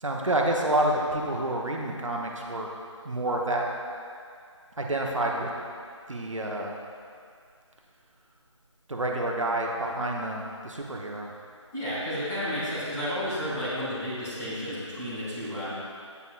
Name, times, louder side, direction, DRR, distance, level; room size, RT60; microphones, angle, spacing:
voice 1, 0.0-2.7 3.0-3.7 4.8-5.5 6.1-6.8 8.9-11.3, right 1 dB, 80° right, 0 dB, 0.9 m, -28 dB
voice 2, 11.7-15.7, equal, 5° left, -15 dB, 0.8 m, -32 dB
8.1 x 5.4 x 2.5 m, 2.2 s
figure-of-eight pair, 165°, 16 cm